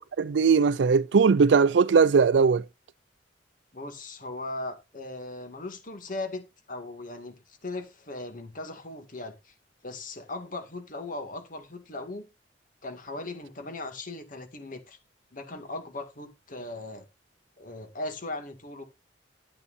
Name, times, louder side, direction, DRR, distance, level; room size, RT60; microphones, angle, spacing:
voice 1, 0.2-2.6, right 5 dB, 80° right, 0.4 m, -19 dB
voice 2, 3.7-9.5 9.8-12.3 12.8-15.0 15.3-17.1 17.6-18.8, left 2 dB, 50° left, 2.1 m, -38 dB
12.0 x 9.7 x 2.6 m
head